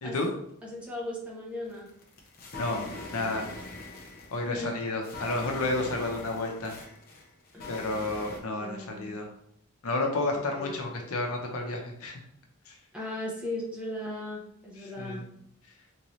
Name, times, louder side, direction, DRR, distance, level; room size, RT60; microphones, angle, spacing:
voice 1, 0.7-1.9 4.5-4.7 7.5-7.7 8.5-9.2 10.3-11.2 12.9-15.3, left 1 dB, 5° right, -5 dB, 0.9 m, -37 dB
sound 1, 1.7-8.4, left 2 dB, 45° left, 0.7 m, -42 dB
voice 2, 2.6-2.9 3.1-3.5 4.3-6.8 7.7-9.3 9.8-12.2 12.7-12.8 14.8-15.2, left 2 dB, 75° left, 1 dB, 0.7 m, -31 dB
3.6 x 2.7 x 3.1 m, 0.72 s
head